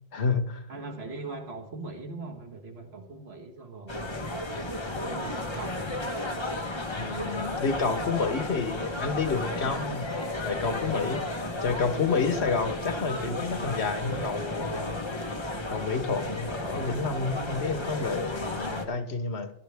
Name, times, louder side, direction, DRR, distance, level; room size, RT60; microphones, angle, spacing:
voice 1, 0.1-0.6 7.0-10.1 10.4-11.2 11.6-15.0 15.7-19.5, left 4 dB, 80° left, 9 dB, 1.4 m, -29 dB
voice 2, 0.7-4.3 4.9-5.8, right 3 dB, 75° right, 3 dB, 1.9 m, -40 dB
sound 1, 3.9-18.8, left 1 dB, 25° left, 1.1 m, -33 dB
16.0 x 12.0 x 3.5 m, 0.78 s
omnidirectional pair, 1.1 m